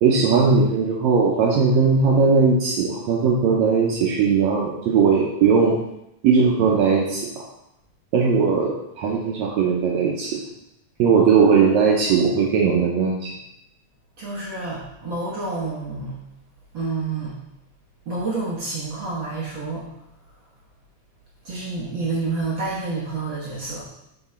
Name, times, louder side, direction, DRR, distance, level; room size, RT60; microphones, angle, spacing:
voice 1, 0.0-5.7 6.2-7.3 8.1-10.4 11.0-13.3, right 5 dB, 75° right, -2 dB, 2.0 m, -18 dB
voice 2, 14.2-16.2 16.7-17.4 18.0-19.9 21.4-23.9, right 3 dB, 55° right, -6 dB, 1.5 m, -28 dB
7.0 x 4.0 x 4.3 m, 0.84 s
omnidirectional pair, 3.4 m